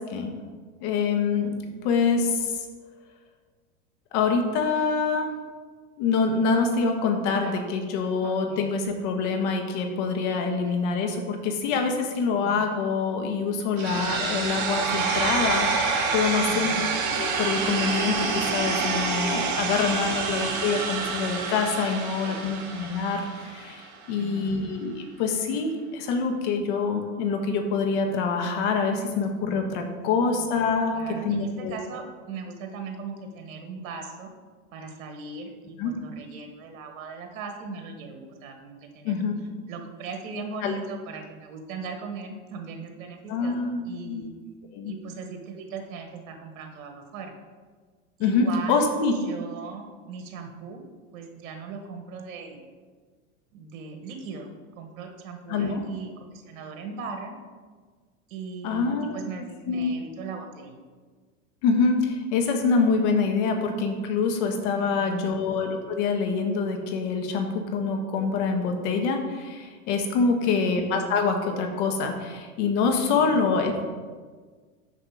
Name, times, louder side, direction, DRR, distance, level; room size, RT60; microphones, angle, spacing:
voice 1, 0.8-2.7 4.1-5.3 6.0-16.7 17.2-24.9 25.2-31.0 31.2-31.8 35.8-35.9 39.0-39.3 40.6-40.7 43.3-44.2 44.7-44.9 48.2-49.1 55.5-55.8 58.6-59.2 59.7-59.9 61.6-73.8, left 4 dB, 55° left, 4 dB, 1.5 m, -25 dB
voice 2, 8.2-8.8 10.6-11.2 12.3-12.6 16.4-16.9 22.1-22.5 24.2-24.7 30.1-30.4 30.9-34.3 34.7-39.1 39.7-44.3 44.8-47.4 48.2-48.8 49.2-50.8 51.1-52.6 53.5-54.5 54.8-57.3 58.3-60.8 64.7-65.3 70.2-70.6 73.1-73.4, right 4 dB, 65° right, 4 dB, 1.4 m, -39 dB
sound 1, 13.8-23.8, right 4 dB, 45° right, 1.9 m, -27 dB
7.2 x 5.8 x 4.9 m, 1.5 s
hypercardioid pair, 110°, 41 cm